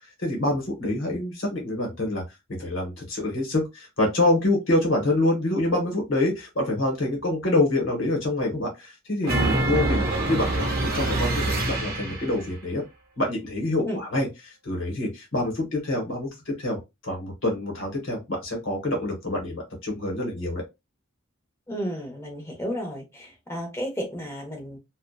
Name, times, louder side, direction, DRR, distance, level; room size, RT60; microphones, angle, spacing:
voice 1, 0.2-2.2 2.6-12.8 13.2-20.6, left 2 dB, 60° left, 1.0 m, -26 dB
sound 1, 9.2-12.4, right 2 dB, 45° right, 0.7 m, -25 dB
voice 2, 21.7-24.8, equal, 10° left, 0.7 m, -32 dB
2.7 x 2.1 x 2.2 m
head